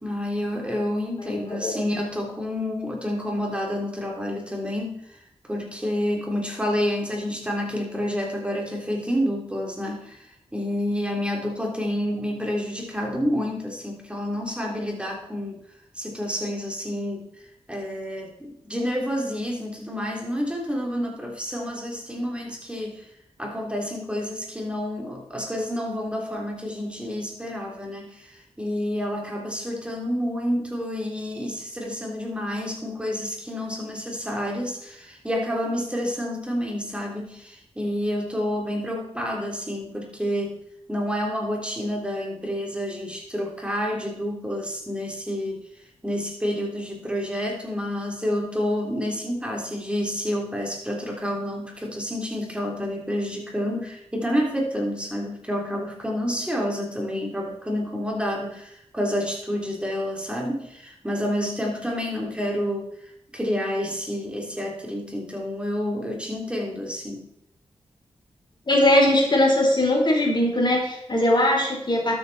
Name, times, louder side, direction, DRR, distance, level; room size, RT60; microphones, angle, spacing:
voice 1, 0.0-5.2 5.5-15.6 16.0-17.2 17.7-23.1 23.4-40.6 40.9-45.6 46.0-67.3, equal, 10° right, -1 dB, 3.5 m, -29 dB
voice 2, 1.2-1.8 68.7-72.1, left 1 dB, 40° left, 0 dB, 4.2 m, -20 dB
12.5 x 8.1 x 4.3 m, 0.75 s
cardioid pair, 50°, 11 cm